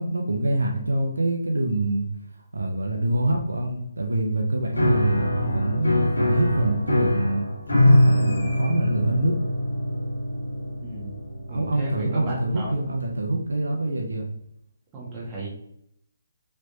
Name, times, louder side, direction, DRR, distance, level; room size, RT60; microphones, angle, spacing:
voice 1, 0.0-2.1 2.5-7.5 7.8-9.4 11.5-14.3, right 1 dB, 80° right, 2 dB, 0.6 m, -25 dB
Piano, 4.7-13.2, left 1 dB, 80° left, 1.3 m, -24 dB
voice 2, 10.8-11.2 11.5-12.7 14.9-15.5, right 2 dB, 20° right, -6 dB, 1.5 m, -34 dB
3.2 x 3.0 x 2.7 m, 0.74 s
figure-of-eight pair, 145°, 0 cm